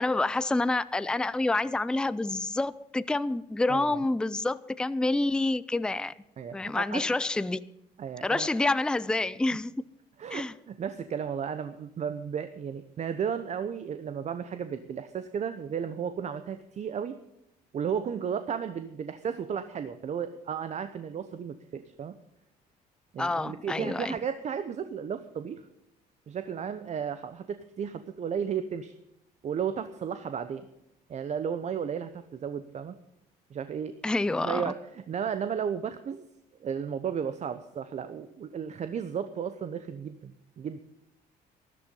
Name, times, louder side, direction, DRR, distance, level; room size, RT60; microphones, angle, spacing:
voice 1, 0.0-6.1 6.5-7.6 8.2-9.7 10.3-10.5 23.2-24.1 34.0-34.6, left 2 dB, 5° left, 0.4 m, -28 dB
voice 2, 3.7-4.0 6.4-7.1 8.0-8.5 10.2-17.2 17.7-22.2 23.1-25.7 26.3-29.0 29.4-30.7 31.1-33.0 33.5-33.9 34.4-36.2 36.6-40.8, right 7 dB, 45° right, 0.8 m, -34 dB
13.5 x 11.5 x 5.4 m
cardioid pair, 110°, 17 cm